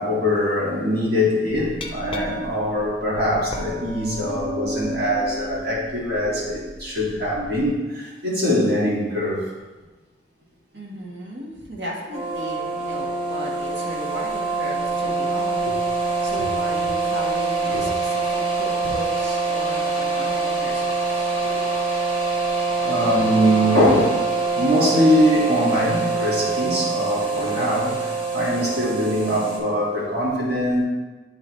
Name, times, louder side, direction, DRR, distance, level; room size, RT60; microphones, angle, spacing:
voice 1, 0.0-9.4 17.7-17.9 22.8-24.2 24.5-30.8, equal, 65° right, -5 dB, 2.0 m, -22 dB
Glass, 1.5-7.7, left 1 dB, 30° left, 0.5 m, -34 dB
voice 2, 4.1-4.5 10.7-15.7 16.2-21.1 27.2-27.7, equal, 85° right, -3 dB, 1.4 m, -35 dB
sound 1, 12.1-29.6, right 3 dB, 30° right, 1.3 m, -24 dB
9.0 x 3.8 x 3.1 m, 1.2 s
head